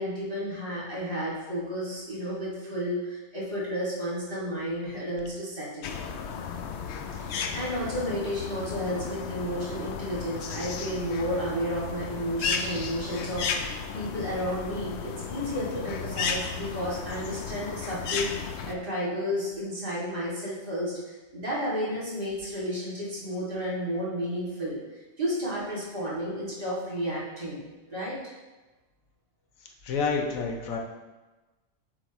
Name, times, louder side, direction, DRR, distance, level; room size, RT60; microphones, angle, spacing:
voice 1, 0.0-5.9 7.2-24.8 25.2-28.2, equal, 45° right, -8 dB, 2.6 m, -32 dB
sound 1, 5.8-18.7, left 6 dB, 65° left, 0.8 m, -34 dB
voice 2, 29.8-30.8, left 5 dB, 90° left, 2 dB, 1.3 m, -28 dB
7.7 x 4.8 x 3.0 m, 1.2 s
omnidirectional pair, 1.4 m